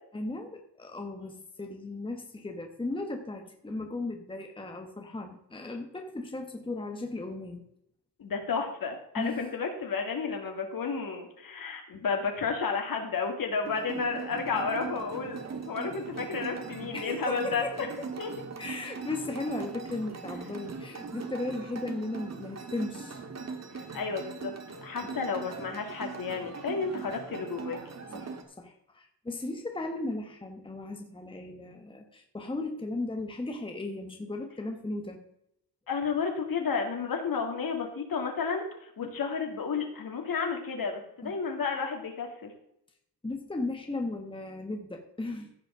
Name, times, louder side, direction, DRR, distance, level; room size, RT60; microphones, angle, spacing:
voice 1, 0.1-7.6 9.1-9.5 16.9-18.1 18.6-23.2 25.0-25.1 26.9-27.0 28.1-35.2 39.0-39.2 41.2-41.3 43.2-45.5, left 2 dB, 10° left, 4 dB, 1.3 m, -36 dB
voice 2, 8.2-17.9 18.2-18.3 23.9-24.5 24.8-27.8 35.9-42.5, left 5 dB, 55° left, 3 dB, 2.8 m, -32 dB
sound 1, 13.6-28.4, right 4 dB, 40° right, 1.7 m, -40 dB
15.5 x 5.4 x 4.8 m, 0.76 s
cardioid pair, 95°, 41 cm